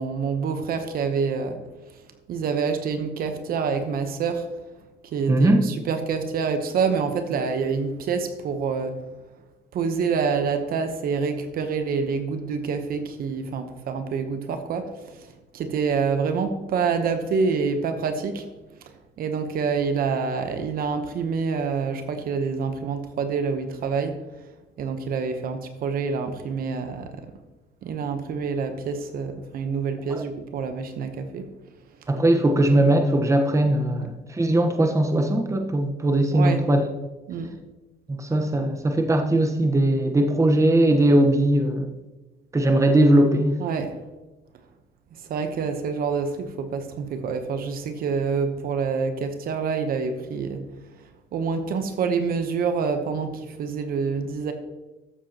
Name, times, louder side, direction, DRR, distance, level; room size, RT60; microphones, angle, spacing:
voice 1, 0.0-1.6 2.3-4.5 5.0-9.0 9.7-15.3 15.5-18.5 19.2-24.2 24.8-27.3 27.8-31.5 33.9-34.0 36.3-36.6 37.3-37.5 43.6-44.0 45.3-50.6 51.3-54.5, right 5 dB, 60° right, 7 dB, 1.0 m, -27 dB
voice 2, 5.3-5.6 30.1-30.2 32.1-36.8 38.1-41.9 42.5-43.6, right 1 dB, 20° right, 4 dB, 1.1 m, -20 dB
13.5 x 7.6 x 2.9 m, 1.1 s
cardioid pair, 110°, 17 cm